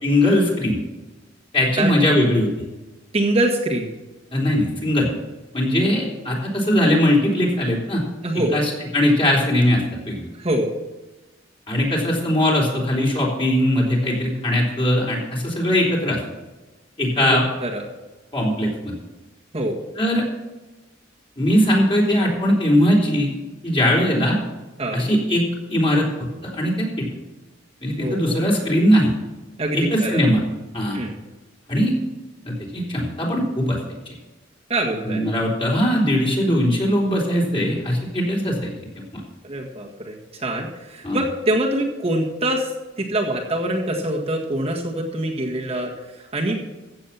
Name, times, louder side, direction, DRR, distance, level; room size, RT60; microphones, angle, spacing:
voice 1, 0.0-0.8 1.5-2.5 4.3-5.1 5.5-8.0 8.5-10.3 11.7-16.2 17.0-17.4 18.3-18.9 20.0-20.3 21.4-23.3 23.6-24.4 24.9-26.1 26.4-27.0 27.8-29.1 29.7-30.4 30.7-31.0 31.7-31.9 32.5-33.8 35.1-38.7 39.1-39.2 41.0-41.2, left 1 dB, 30° left, -3 dB, 3.8 m, -20 dB
voice 2, 3.1-3.9 8.2-8.6 10.3-10.7 17.2-17.8 19.5-19.8 24.8-25.1 28.0-28.5 29.6-30.2 30.9-31.1 34.7-35.2 39.4-42.7 43.0-46.6, right 1 dB, 35° right, -1 dB, 1.8 m, -24 dB
15.0 x 7.8 x 5.8 m, 1.1 s
head